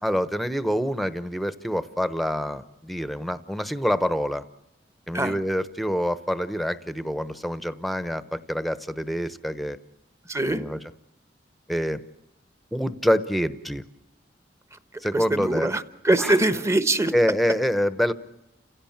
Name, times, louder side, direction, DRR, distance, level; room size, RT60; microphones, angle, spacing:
voice 1, 0.0-4.4 5.1-9.8 10.4-10.8 11.7-12.0 12.7-13.8 15.0-15.7 16.2-16.4 17.1-18.1, equal, ahead, 13 dB, 0.9 m, -26 dB
voice 2, 10.3-10.6 15.1-17.1, right 2 dB, 15° right, 12 dB, 1.1 m, -23 dB
30.0 x 16.5 x 8.7 m, 0.88 s
head